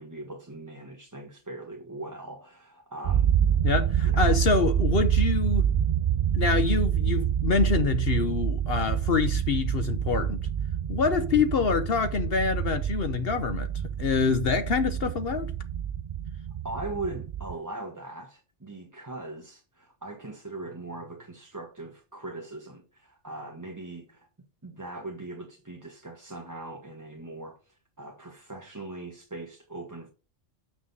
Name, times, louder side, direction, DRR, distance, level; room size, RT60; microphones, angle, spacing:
voice 1, 0.0-3.3 4.0-4.3 16.6-24.3 24.6-30.1, right 2 dB, 15° right, 1.1 m, -40 dB
sound 1, 3.0-17.5, right 9 dB, 55° right, 0.4 m, -27 dB
voice 2, 3.6-5.7 6.3-10.4 10.9-13.7 14.0-15.5, left 5 dB, 60° left, 1.0 m, -26 dB
7.9 x 6.2 x 5.3 m
omnidirectional pair, 1.2 m